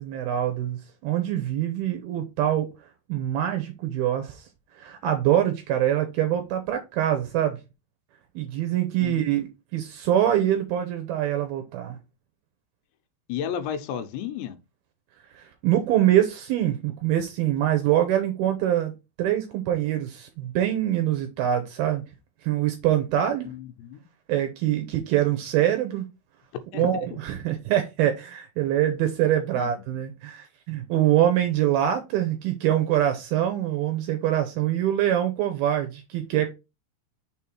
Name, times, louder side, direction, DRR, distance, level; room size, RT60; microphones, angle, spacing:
voice 1, 0.0-2.7 3.1-4.5 4.8-7.6 8.4-12.0 15.3-18.9 19.2-22.0 22.4-23.5 24.3-26.1 26.7-36.5, right 11 dB, 75° right, 2.4 m, -24 dB
voice 2, 9.0-9.5 13.3-14.6 23.4-24.1 26.7-27.0 29.6-29.7, left 9 dB, 85° left, 2.9 m, -33 dB
6.2 x 3.6 x 4.4 m
omnidirectional pair, 4.9 m